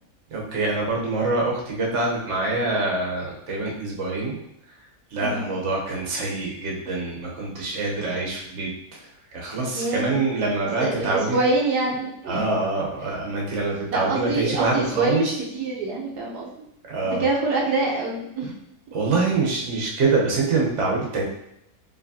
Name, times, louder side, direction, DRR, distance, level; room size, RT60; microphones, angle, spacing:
voice 1, 0.3-4.4 5.1-11.4 12.3-15.3 16.9-17.2 18.9-21.2, right 3 dB, 50° right, -3 dB, 1.2 m, -25 dB
voice 2, 9.7-10.2 10.8-12.4 13.9-16.5 17.2-18.6, right 3 dB, 80° right, -2 dB, 1.3 m, -25 dB
5.0 x 3.0 x 2.8 m, 0.78 s
omnidirectional pair, 1.7 m